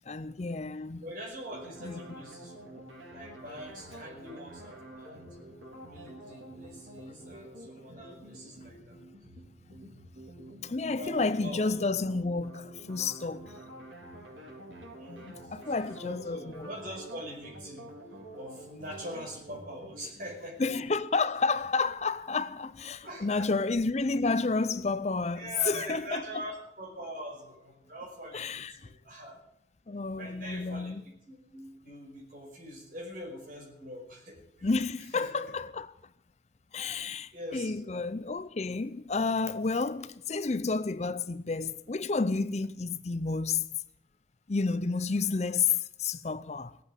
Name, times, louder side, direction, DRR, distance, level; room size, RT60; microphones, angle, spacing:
voice 1, 0.1-1.0 1.8-2.1 9.7-9.9 10.6-13.6 15.1-16.7 20.6-26.3 28.3-28.9 29.9-31.0 34.6-35.9 36.7-43.7 44.5-46.8, left 4 dB, 35° left, 0.5 m, -31 dB
voice 2, 1.0-2.6 3.1-5.2 5.9-9.0 11.0-11.8 15.0-15.6 16.0-17.9 18.3-20.7 23.0-23.5 24.7-24.8 25.4-29.4 30.2-31.0 31.3-34.7 35.1-35.5 36.8-37.9, equal, 45° right, 5.3 m, -43 dB
sound 1, 1.4-20.9, right 1 dB, 80° right, 4.5 m, -48 dB
17.0 x 8.4 x 9.1 m
head